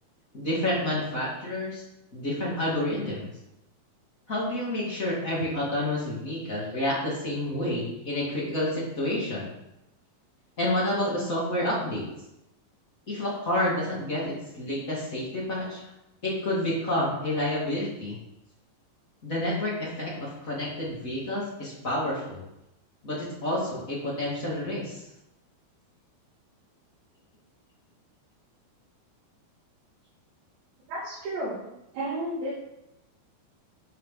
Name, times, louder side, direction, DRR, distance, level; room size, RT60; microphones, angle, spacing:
voice 1, 0.3-1.8 2.1-3.3 4.3-9.5 10.6-12.1 13.1-15.8 16.2-18.2 19.2-22.4 23.0-25.0, left 1 dB, 30° left, -6 dB, 1.5 m, -29 dB
voice 2, 30.9-32.6, right 1 dB, 75° right, -8 dB, 4.3 m, -33 dB
10.5 x 4.5 x 5.5 m, 0.88 s
omnidirectional pair, 5.1 m